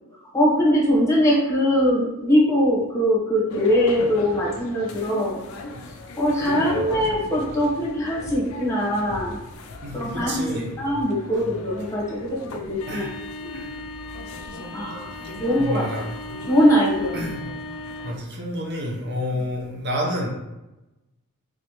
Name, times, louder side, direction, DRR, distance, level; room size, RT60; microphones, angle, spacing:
voice 1, 0.3-5.4 6.2-9.4 9.9-13.1 13.4-13.6 14.7-15.1 15.4-15.9 16.5-17.2, equal, 15° left, -5 dB, 1.1 m, -21 dB
sound 1, 3.5-18.2, left 1 dB, 70° left, 0.4 m, -36 dB
voice 2, 9.8-10.7 12.9-13.1 13.5-13.7 15.2-16.4 17.1-17.4 18.0-20.3, equal, 50° right, -1 dB, 0.7 m, -29 dB
3.5 x 3.2 x 2.9 m, 0.98 s
head